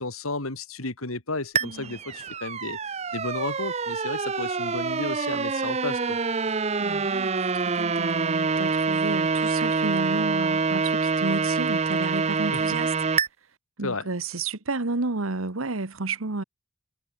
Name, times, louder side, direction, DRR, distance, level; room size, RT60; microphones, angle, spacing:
voice 1, 0.0-2.8 3.1-6.2 12.5-12.8 13.8-14.1, left 2 dB, 85° left, 3.0 m, -33 dB
sound 1, 1.5-13.3, right 4 dB, 30° right, 0.6 m, -26 dB
voice 2, 1.6-2.0 6.8-12.9 13.8-16.4, right 3 dB, 80° right, 1.4 m, -32 dB
head